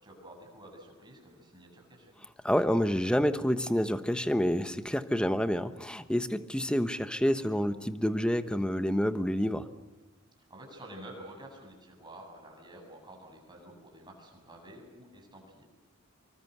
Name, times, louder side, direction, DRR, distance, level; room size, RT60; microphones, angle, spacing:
voice 1, 0.0-2.1 10.5-15.7, right 1 dB, 20° right, 2 dB, 7.7 m, -49 dB
voice 2, 2.4-9.6, equal, 5° left, 10 dB, 1.1 m, -28 dB
26.5 x 24.5 x 8.1 m, 1.2 s
head